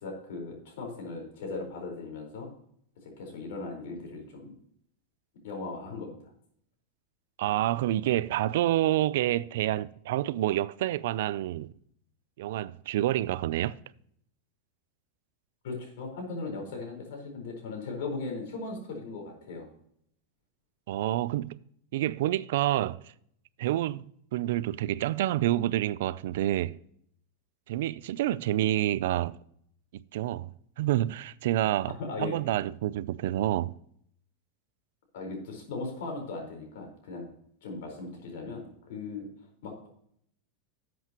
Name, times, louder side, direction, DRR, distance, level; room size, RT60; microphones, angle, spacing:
voice 1, 0.0-2.5 3.0-4.5 5.4-6.2 15.6-19.7 32.0-32.3 35.1-37.3 37.6-39.3 39.6-39.9, left 3 dB, 75° left, 4.5 m, -38 dB
voice 2, 7.4-11.7 12.4-13.8 20.9-21.6 21.9-23.0 23.6-26.8 27.7-29.4 30.1-30.5 30.8-33.7, right 14 dB, 70° right, 0.4 m, -28 dB
12.5 x 7.8 x 3.0 m
supercardioid pair, 145°, 0 cm